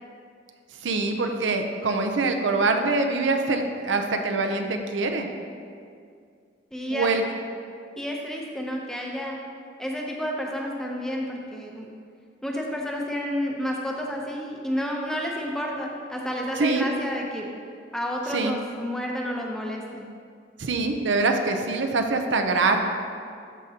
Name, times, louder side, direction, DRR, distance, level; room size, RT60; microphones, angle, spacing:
voice 1, 0.8-5.3 6.9-7.2 16.6-16.9 18.3-18.5 20.6-22.8, right 3 dB, 85° right, 5 dB, 0.6 m, -24 dB
voice 2, 6.7-7.1 8.0-9.4 9.8-11.9 12.4-17.5 17.9-20.1, equal, 5° left, -1 dB, 0.7 m, -30 dB
12.5 x 5.1 x 2.8 m, 2.3 s
head